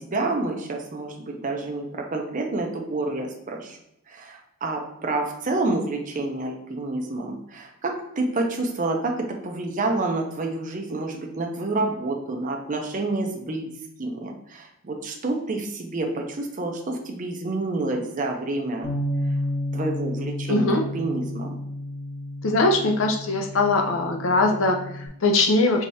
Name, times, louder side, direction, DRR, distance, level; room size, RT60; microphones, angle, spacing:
voice 1, 0.0-3.8 4.1-13.7 14.0-18.9 19.7-21.5, right 2 dB, 40° right, 2 dB, 0.6 m, -28 dB
Bass guitar, 18.8-25.1, left 1 dB, 25° left, 1.0 m, -31 dB
voice 2, 20.5-20.8 22.4-25.8, left 2 dB, 70° left, 3 dB, 0.7 m, -21 dB
4.7 x 3.3 x 2.8 m, 0.80 s
head